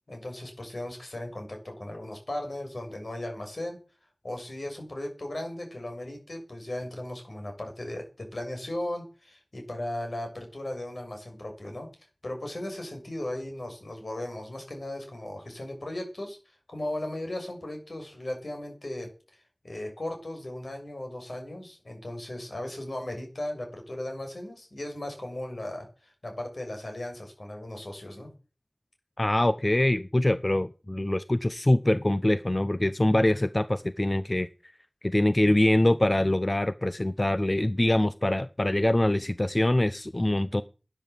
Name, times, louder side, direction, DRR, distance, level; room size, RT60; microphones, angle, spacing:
voice 1, 0.1-3.8 4.2-11.9 12.2-28.3, left 1 dB, 75° left, 6.9 m, -37 dB
voice 2, 29.2-34.5 35.0-40.6, left 1 dB, 40° left, 0.8 m, -24 dB
12.5 x 10.5 x 7.7 m
wide cardioid pair, 45°, 0 cm